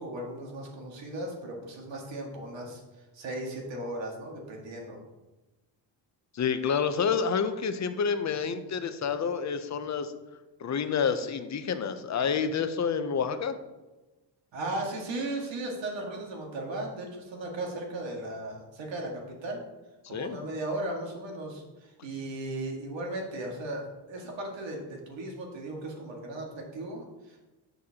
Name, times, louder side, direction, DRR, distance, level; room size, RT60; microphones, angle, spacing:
voice 1, 0.0-2.8 3.1-5.0 14.5-19.6 20.1-27.4, right 1 dB, 75° right, 0 dB, 1.9 m, -36 dB
voice 2, 6.3-10.1 10.6-13.5 20.0-20.4, left 6 dB, 40° left, 10 dB, 0.6 m, -28 dB
9.0 x 6.4 x 2.9 m, 1.1 s
cardioid pair, 120°, 45 cm